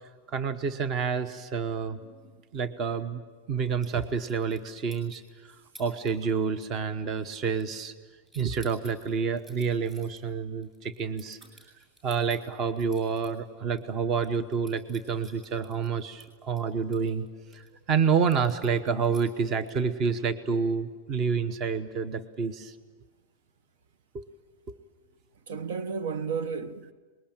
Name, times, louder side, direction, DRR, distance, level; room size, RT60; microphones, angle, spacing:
voice 1, 0.3-2.0 2.5-3.2 3.5-5.2 5.8-7.9 8.3-11.4 12.0-17.3 17.5-22.7 24.1-24.2, right 6 dB, 30° right, 1.0 m, -28 dB
sound 1, 3.8-4.7 4.9-5.3 5.7-6.1 6.4-6.7 7.0-8.0 8.3-13.3 13.7-13.8 14.1-17.7 18.3-19.9, right 1 dB, 10° right, 7.9 m, -55 dB
voice 2, 25.5-26.9, right 5 dB, 80° right, 1.3 m, -33 dB
25.0 x 21.5 x 8.9 m
supercardioid pair, 170°, 0 cm